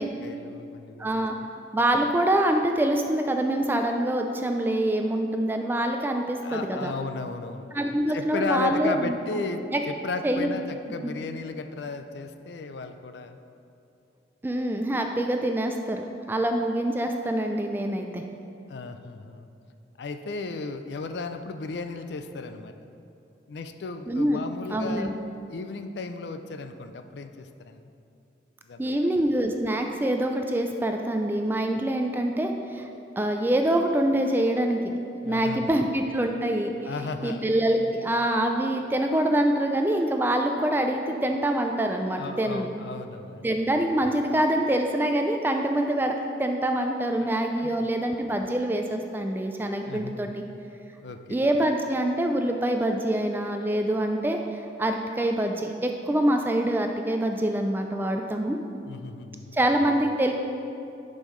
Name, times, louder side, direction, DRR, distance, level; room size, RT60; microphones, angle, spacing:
voice 1, 0.2-1.1 1.4-1.5 6.4-7.7 8.1-13.4 18.7-19.5 20.0-22.7 23.5-25.2 25.5-27.8 28.7-29.0 35.2-35.8 36.9-37.5 42.2-43.5 47.2-47.3 47.6-47.7 49.9-50.4 51.0-51.2 58.8-59.6, left 4 dB, 65° left, 8 dB, 0.4 m, -35 dB
voice 2, 1.0-1.3 1.7-6.9 7.7-9.2 9.7-9.8 10.2-10.5 14.4-18.2 24.1-24.4 24.7-25.1 28.8-32.9 33.2-34.8 35.3-36.8 37.2-42.7 43.4-50.4 51.3-58.6 59.5-60.3, right 1 dB, 10° right, 4 dB, 0.3 m, -25 dB
10.5 x 5.4 x 3.1 m, 2.7 s
head